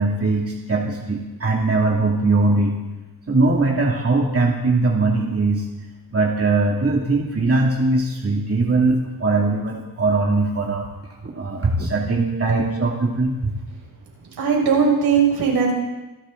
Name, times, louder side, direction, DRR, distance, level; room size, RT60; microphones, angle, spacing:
voice 1, 0.0-2.8 3.3-5.7 6.1-10.8 11.2-13.5, right 3 dB, 40° right, -1 dB, 2.6 m, -20 dB
voice 2, 14.4-15.7, right 6 dB, 80° right, -2 dB, 6.7 m, -18 dB
27.0 x 13.0 x 3.9 m, 1.1 s
cardioid pair, 90°, 37 cm